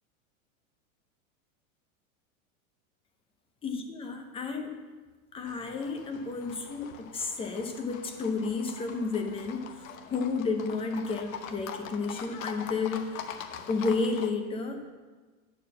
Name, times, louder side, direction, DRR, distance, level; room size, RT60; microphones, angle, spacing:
voice 1, 3.6-4.8 5.3-13.3 13.7-14.8, left 4 dB, 15° left, 4 dB, 0.6 m, -32 dB
Livestock farm animals working animals, 5.5-14.3, left 8 dB, 70° left, 1.0 m, -43 dB
8.9 x 4.8 x 7.1 m, 1.3 s
supercardioid pair, 145°, 43 cm